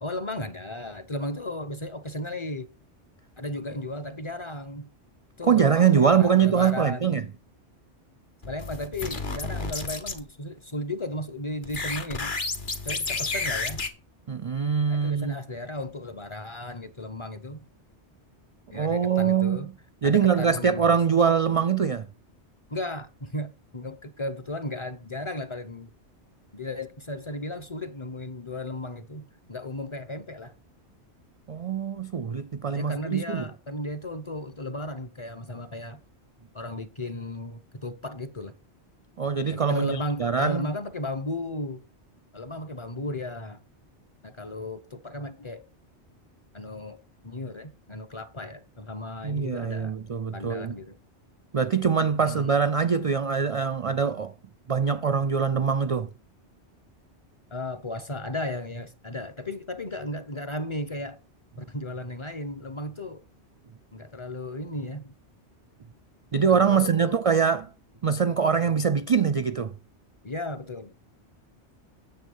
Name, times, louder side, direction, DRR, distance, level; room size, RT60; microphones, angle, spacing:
voice 1, 0.0-2.7 3.4-4.9 5.4-7.0 8.5-12.4 12.8-13.8 14.9-17.6 18.7-19.7 20.0-21.0 22.7-25.9 26.5-30.5 32.7-36.0 36.5-38.5 39.5-41.8 42.3-43.6 44.2-45.6 46.5-47.0 47.2-49.9 50.3-51.0 52.2-52.5 57.5-61.2 61.6-63.2 63.9-65.1 66.5-67.1 70.2-70.9, left 1 dB, 30° left, 0.8 m, -35 dB
voice 2, 5.4-7.3 14.3-15.3 18.7-19.7 20.0-22.1 31.5-33.5 39.2-40.7 49.2-50.7 51.5-54.3 54.7-56.1 66.3-67.7 68.0-69.7, right 6 dB, 45° right, 0.4 m, -23 dB
sound 1, 8.4-10.2 11.6-13.9, left 3 dB, 45° left, 1.5 m, -31 dB
9.3 x 7.5 x 5.5 m
omnidirectional pair, 1.1 m